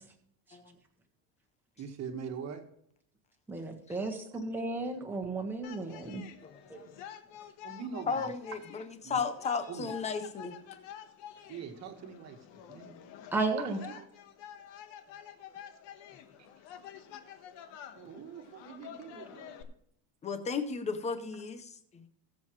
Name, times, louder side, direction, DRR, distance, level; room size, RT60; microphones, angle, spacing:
voice 1, 1.8-2.6 7.6-8.3 9.0-9.2 9.7-9.9 11.5-12.4 12.7-13.0 13.6-14.1 16.4-16.5 18.0-19.7, right 6 dB, 30° right, 1.6 m, -43 dB
voice 2, 3.5-6.2 6.7-6.8 13.3-13.8, right 3 dB, 5° right, 1.3 m, -33 dB
sound 1, 5.6-19.6, left 10 dB, 60° left, 1.3 m, -49 dB
voice 3, 8.1-10.6 20.2-22.1, left 5 dB, 15° left, 0.5 m, -34 dB
21.0 x 7.4 x 3.1 m
cardioid pair, 175°, 50 cm